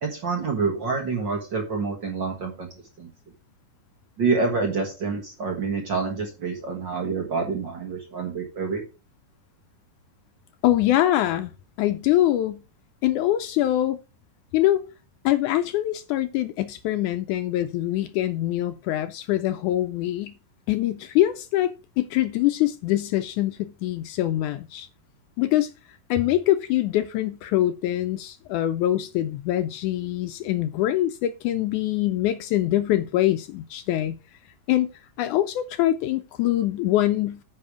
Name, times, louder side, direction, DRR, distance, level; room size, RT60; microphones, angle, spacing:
voice 1, 0.0-2.7 3.0-3.1 4.2-8.8, right 4 dB, 45° right, 1.6 m, -27 dB
voice 2, 10.6-11.5 11.8-12.6 13.0-14.0 14.5-14.8 15.3-20.4 20.7-24.9 25.4-25.7 26.1-34.2 34.7-34.9 35.2-37.4, left 14 dB, 80° left, 1.8 m, -24 dB
9.7 x 5.4 x 4.9 m
omnidirectional pair, 3.8 m